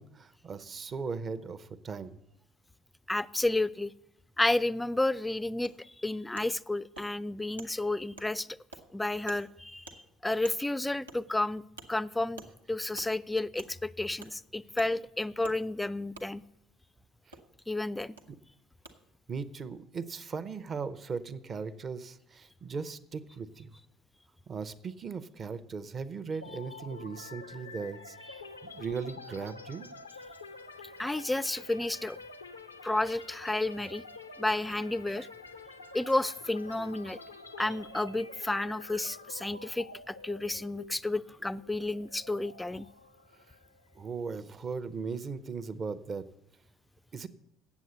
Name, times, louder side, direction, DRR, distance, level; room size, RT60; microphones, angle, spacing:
voice 1, 0.0-2.2 17.3-17.4 19.3-23.7 24.5-28.2 28.6-29.9 44.0-46.2 47.1-47.3, right 5 dB, 35° right, 14 dB, 0.7 m, -38 dB
voice 2, 3.1-3.9 4.4-8.6 8.9-11.6 11.9-16.4 17.7-18.2 31.0-32.2 32.8-34.0 34.4-35.3 35.9-37.2 37.6-42.9, left 2 dB, 10° left, 18 dB, 0.3 m, -31 dB
Wood, 5.6-5.7 6.4-6.5 7.0-7.1 7.6-7.7 8.2-8.3 8.7-8.8 9.3-9.4 9.9-10.0 10.4-10.6 11.1-11.2 11.8-11.9 12.4-12.5 13.0-13.1 13.6-13.7 14.2-14.3 14.8-14.9 15.4-15.6 16.1-16.3 17.3-17.4 18.2-18.3 18.8-18.9, right 3 dB, 85° right, 0.8 m, -47 dB
sound 1, 26.4-44.2, left 3 dB, 90° left, 0.5 m, -48 dB
8.3 x 7.7 x 7.9 m, 0.80 s
figure-of-eight pair, 60°, 0 cm